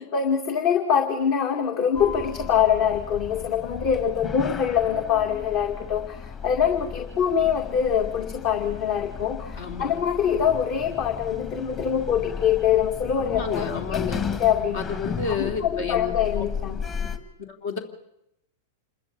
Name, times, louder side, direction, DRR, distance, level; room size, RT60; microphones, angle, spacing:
voice 1, 0.0-14.0 14.4-14.9 15.3-16.8, left 8 dB, 50° left, 5 dB, 2.3 m, -24 dB
Sliding door, 1.9-17.2, left 6 dB, 25° left, 2.2 m, -35 dB
voice 2, 9.6-10.0 13.2-14.2 14.7-16.5 17.4-17.8, left 5 dB, 65° left, 4 dB, 3.2 m, -31 dB
27.5 x 13.5 x 8.6 m, 0.83 s
hypercardioid pair, 115°, 0 cm